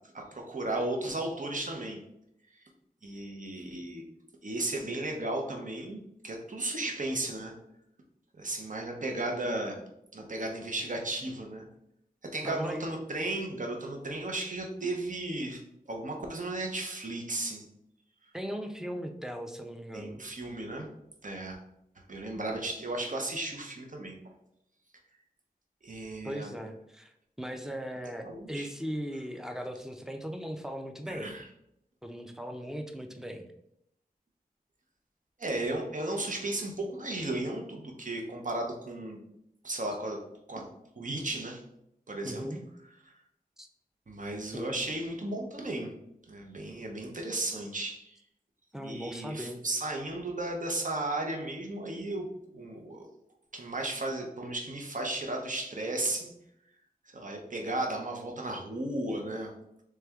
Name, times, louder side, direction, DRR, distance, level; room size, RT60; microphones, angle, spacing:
voice 1, 0.1-2.0 3.0-4.0 4.4-7.5 8.4-9.8 10.1-11.7 12.3-15.6 15.9-17.7 19.9-20.9 21.2-21.6 22.1-24.2 25.8-26.5 28.2-28.7 31.1-31.4 35.4-39.2 39.6-40.2 40.5-40.6 41.0-41.6 42.1-42.5 44.1-45.9 46.3-48.2 48.8-52.3 52.5-53.1 53.5-56.3 57.1-59.5, right 2 dB, 55° right, 1 dB, 0.8 m, -35 dB
voice 2, 12.4-12.8 18.3-20.2 26.2-27.1 27.4-31.3 32.0-33.4 42.2-42.6 43.6-43.7 44.5-44.8 48.7-49.6, equal, 5° right, 5 dB, 0.5 m, -38 dB
3.3 x 3.2 x 3.5 m, 0.79 s
wide cardioid pair, 60°, 16 cm